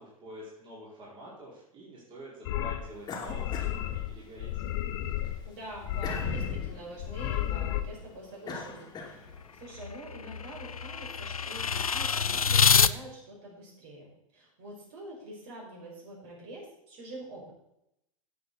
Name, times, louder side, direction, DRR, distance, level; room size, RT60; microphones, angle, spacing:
voice 1, 0.0-4.5, right 1 dB, 30° right, -5 dB, 4.9 m, -47 dB
sound 1, 2.4-2.8 3.3-4.1 4.4-5.4 5.7-6.7 7.0-7.8, left 12 dB, 50° left, 1.1 m, -32 dB
sound 2, 3.0-4.6 5.0-9.6, left 2 dB, 20° left, 2.5 m, -41 dB
voice 2, 5.4-9.2 9.5-17.5, right 1 dB, 45° right, -2 dB, 5.5 m, -45 dB
sound 3, 9.3-12.9, left 6 dB, 85° left, 0.4 m, -26 dB
17.0 x 7.5 x 4.1 m, 0.82 s
figure-of-eight pair, 95°, 18 cm